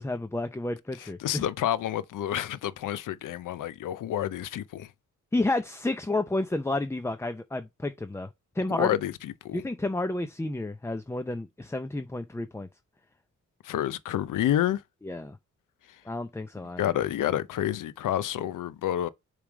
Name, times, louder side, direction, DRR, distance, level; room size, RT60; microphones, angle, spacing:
voice 1, 0.0-1.4 5.3-8.3 8.6-8.9 9.5-12.7 15.0-15.4 16.1-16.8, left 2 dB, 10° left, 0.5 m, -31 dB
voice 2, 1.0-4.9 8.8-9.6 13.6-14.8 16.8-19.1, left 11 dB, 80° left, 0.6 m, -29 dB
6.9 x 3.3 x 5.0 m
cardioid pair, 100°, 31 cm